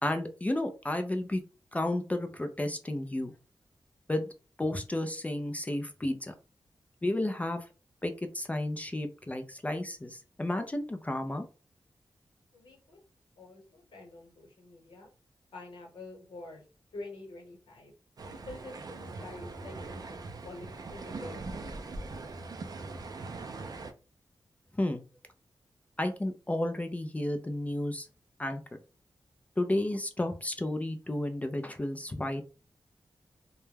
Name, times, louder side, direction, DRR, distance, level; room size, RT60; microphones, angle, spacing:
voice 1, 0.0-1.4 1.7-3.3 4.1-4.3 4.6-6.3 7.0-7.7 8.0-11.5 24.7-25.0 26.0-28.1 28.4-28.6 29.6-32.5, left 1 dB, 15° left, 6 dB, 0.4 m, -32 dB
voice 2, 12.5-13.0 13.4-15.1 15.5-16.6 16.9-17.9 18.3-20.2 20.4-21.4, left 2 dB, 85° left, 1 dB, 1.0 m, -47 dB
sound 1, 18.2-23.9, right 3 dB, 50° right, 0.4 m, -41 dB
2.2 x 2.1 x 3.2 m, 0.34 s
wide cardioid pair, 90°, 8 cm